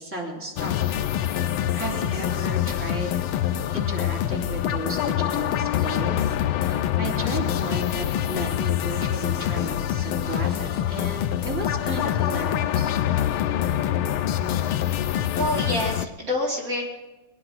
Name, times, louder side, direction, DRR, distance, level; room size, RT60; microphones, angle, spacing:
voice 1, 0.0-1.4 1.7-3.1 3.7-12.9, right 2 dB, 5° right, -3 dB, 3.3 m, -34 dB
sound 1, 0.6-16.1, left 11 dB, 90° left, 1.5 m, -25 dB
voice 2, 15.4-16.9, left 1 dB, 45° right, -3 dB, 3.4 m, -27 dB
22.5 x 11.0 x 5.9 m, 1.1 s
omnidirectional pair, 2.2 m